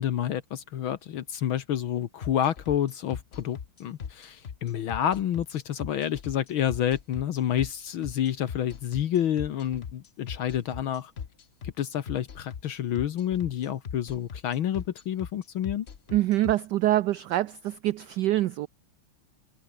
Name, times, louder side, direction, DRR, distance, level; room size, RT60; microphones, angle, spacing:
voice 1, 0.0-11.1 11.6-15.9, left 10 dB, 70° left, 1.9 m, -29 dB
sound 1, 2.2-16.5, left 7 dB, 45° left, 0.9 m, -39 dB
voice 2, 16.1-18.7, right 15 dB, 80° right, 0.9 m, -25 dB
omnidirectional pair, 2.4 m